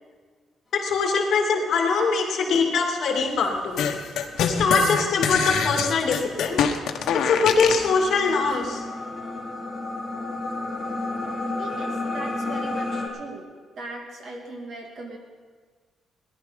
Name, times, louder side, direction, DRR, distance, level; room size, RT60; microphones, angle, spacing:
voice 1, 0.7-3.9 4.5-6.6 7.2-8.8, left 4 dB, 55° left, 1 dB, 2.6 m, -22 dB
sound 1, 3.8-7.9, left 7 dB, 85° left, 1.1 m, -25 dB
sound 2, 5.3-13.1, left 2 dB, 10° left, 2.3 m, -32 dB
voice 2, 11.6-13.5 13.8-15.2, right 2 dB, 55° right, 1 dB, 2.6 m, -39 dB
18.0 x 11.0 x 5.2 m, 1.5 s
cardioid pair, 165°, 0 cm